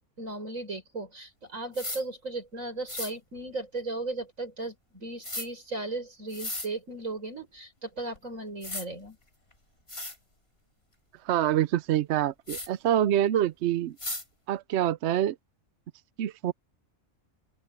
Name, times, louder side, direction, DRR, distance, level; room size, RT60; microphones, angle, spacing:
voice 1, 0.2-9.2, right 2 dB, 85° right, 5.8 m, -36 dB
sound 1, 1.7-2.0 2.9-3.1 5.2-5.5 6.3-6.7 8.1-8.2 8.6-8.9 9.5-9.6 9.9-10.2 12.5-12.7 14.0-14.2, left 2 dB, 50° left, 6.0 m, -35 dB
voice 2, 11.2-14.0 14.5-15.4 16.2-16.5, right 11 dB, 65° right, 0.8 m, -26 dB
open air
omnidirectional pair, 1.3 m